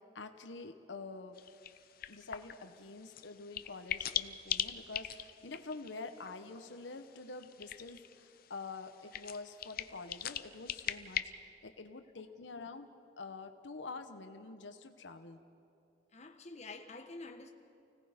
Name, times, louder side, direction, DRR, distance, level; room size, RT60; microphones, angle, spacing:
voice 1, 0.0-1.4 2.1-12.9 13.2-15.4, left 3 dB, 90° left, 7 dB, 1.1 m, -47 dB
sound 1, 1.3-11.2, left 10 dB, 55° left, 0.6 m, -42 dB
voice 2, 16.1-17.5, left 3 dB, 40° left, 4 dB, 1.4 m, -48 dB
29.5 x 17.5 x 5.2 m, 2.6 s
head